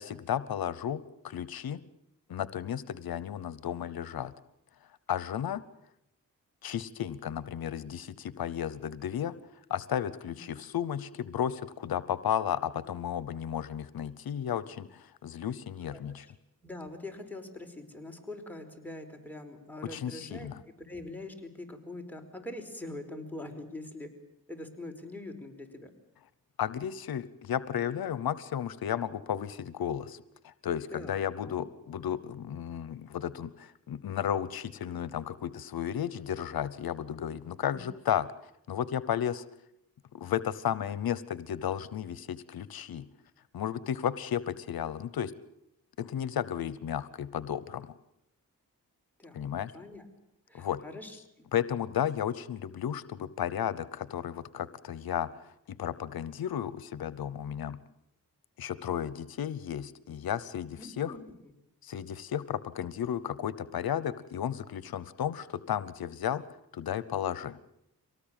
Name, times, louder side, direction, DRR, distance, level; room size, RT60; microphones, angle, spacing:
voice 1, 0.0-1.8 2.3-4.3 5.1-5.6 6.6-9.3 9.7-16.3 19.8-20.6 26.6-38.3 38.7-39.4 40.1-43.1 43.5-45.3 46.0-47.9 49.3-49.7 50.5-50.8 51.5-55.5 55.8-57.8 58.6-61.2 61.8-67.6, left 9 dB, 85° left, 17 dB, 0.9 m, -33 dB
voice 2, 15.9-16.3 16.6-24.1 24.5-25.9 30.9-31.6 37.7-37.8 49.2-49.5 49.7-50.0 50.5-51.5 60.8-61.5, left 2 dB, 5° left, 3 dB, 5.0 m, -43 dB
24.5 x 18.5 x 9.0 m, 0.80 s
cardioid pair, 60°, 35 cm